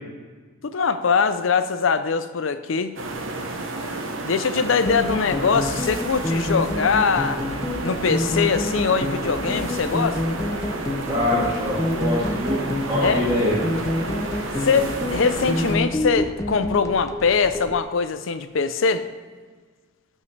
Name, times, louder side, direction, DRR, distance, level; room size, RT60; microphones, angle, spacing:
voice 1, 0.6-2.9 4.2-7.4 7.8-10.4 13.0-13.2 14.6-19.1, left 5 dB, 70° left, 11 dB, 0.5 m, -22 dB
sound 1, 3.0-15.8, right 2 dB, 75° right, 1.0 m, -31 dB
sound 2, 4.9-17.8, left 1 dB, 15° left, 0.4 m, -28 dB
voice 2, 11.0-13.6, left 1 dB, 20° right, -10 dB, 1.9 m, -24 dB
13.5 x 5.4 x 3.3 m, 1.5 s
head